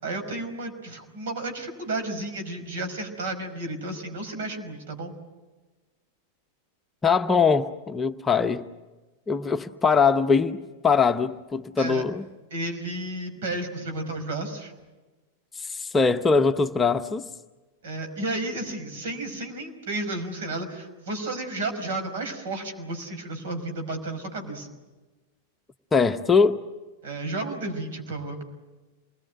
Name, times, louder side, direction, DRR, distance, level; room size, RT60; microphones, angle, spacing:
voice 1, 0.0-5.1 11.8-12.0 12.5-14.7 17.8-24.7 27.0-28.4, right 2 dB, 60° right, 6 dB, 5.4 m, -32 dB
voice 2, 7.0-8.6 9.3-12.2 15.6-17.3 25.9-26.6, left 5 dB, 15° left, 7 dB, 0.9 m, -22 dB
28.0 x 21.0 x 9.3 m, 1.2 s
figure-of-eight pair, 90°, 0 cm